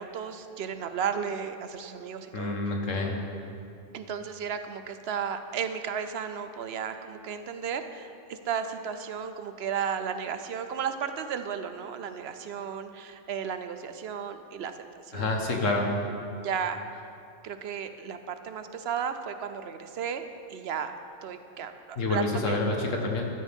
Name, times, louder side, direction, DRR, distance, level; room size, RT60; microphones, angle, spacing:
voice 1, 0.0-2.6 3.9-14.7 15.1-15.6 16.4-16.8 17.4-20.9 21.2-22.6, right 7 dB, 60° right, 9 dB, 0.8 m, -34 dB
voice 2, 2.3-3.2 15.1-15.9 22.0-23.3, left 2 dB, 75° left, 1 dB, 1.7 m, -28 dB
13.0 x 13.0 x 3.6 m, 2.6 s
omnidirectional pair, 1.3 m